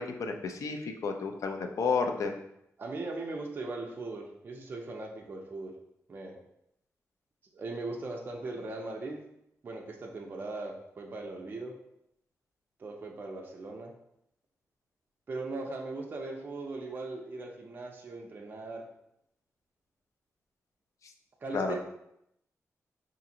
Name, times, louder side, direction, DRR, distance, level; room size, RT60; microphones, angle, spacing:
voice 1, 0.0-2.3 21.5-21.8, left 4 dB, 70° left, 5 dB, 0.4 m, -31 dB
voice 2, 2.8-5.7 6.1-6.3 7.5-9.2 9.6-11.7 12.8-13.9 15.3-18.8 21.4-21.8, right 2 dB, 35° right, 0 dB, 0.4 m, -39 dB
4.8 x 2.5 x 2.8 m, 0.78 s
wide cardioid pair, 160°, 6 cm